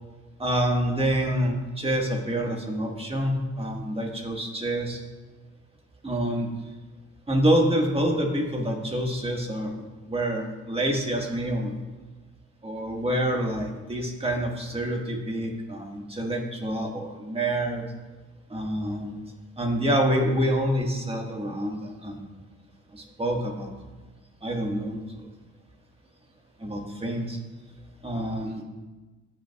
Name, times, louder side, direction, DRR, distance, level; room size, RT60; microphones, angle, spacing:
voice 1, 0.4-5.0 6.0-6.5 7.3-9.7 10.1-11.7 12.6-17.8 18.5-19.2 19.6-22.3 22.9-23.7 24.4-25.0 26.6-27.4 28.0-28.6, right 1 dB, 20° right, 1 dB, 1.5 m, -27 dB
14.0 x 5.6 x 2.3 m, 1.2 s
cardioid pair, 90°, 30 cm